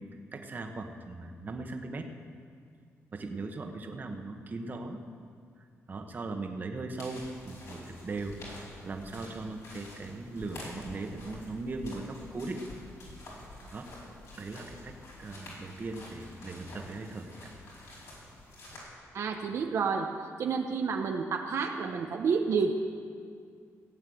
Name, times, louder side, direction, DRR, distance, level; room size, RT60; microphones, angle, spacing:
voice 1, 0.3-2.1 3.1-5.0 5.6-12.6 13.7-13.9 14.4-17.5, right 3 dB, 35° right, 5 dB, 1.2 m, -39 dB
sound 1, 7.0-18.8, left 1 dB, 75° left, 4.9 m, -48 dB
voice 2, 19.1-20.1 20.4-22.7, right 5 dB, 65° right, 3 dB, 0.8 m, -29 dB
16.0 x 8.7 x 7.8 m, 2.2 s
wide cardioid pair, 135°, 5 cm